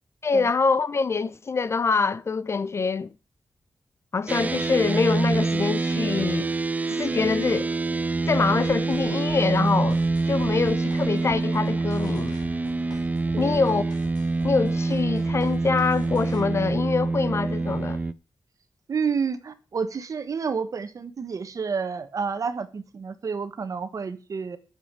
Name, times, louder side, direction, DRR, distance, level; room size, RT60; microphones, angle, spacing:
voice 1, 0.2-3.1 4.1-6.5 6.9-7.7 8.3-10.0 10.3-12.4 13.4-13.8 14.4-18.0, left 4 dB, 40° left, 0.5 m, -25 dB
sound 1, 4.3-18.1, right 3 dB, 20° right, 0.5 m, -26 dB
sound 2, 8.4-16.4, left 3 dB, 70° left, 3.9 m, -48 dB
voice 2, 18.9-24.6, right 5 dB, 50° right, 1.3 m, -30 dB
9.3 x 7.3 x 8.2 m
wide cardioid pair, 180°, 7 cm